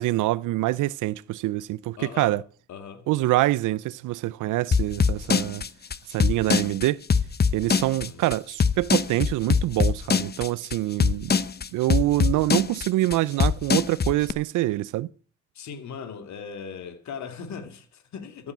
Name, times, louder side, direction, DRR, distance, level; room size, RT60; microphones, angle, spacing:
voice 1, 0.0-2.4 3.1-5.6 6.1-7.0 7.5-11.3 11.7-15.1, right 17 dB, 85° right, 0.6 m, -25 dB
voice 2, 2.0-2.4 2.7-3.1 7.7-8.2 15.5-18.5, left 6 dB, 65° left, 2.6 m, -39 dB
sound 1, 4.7-14.3, left 5 dB, 35° left, 1.0 m, -22 dB
14.5 x 8.7 x 8.0 m
cardioid pair, 90°, 30 cm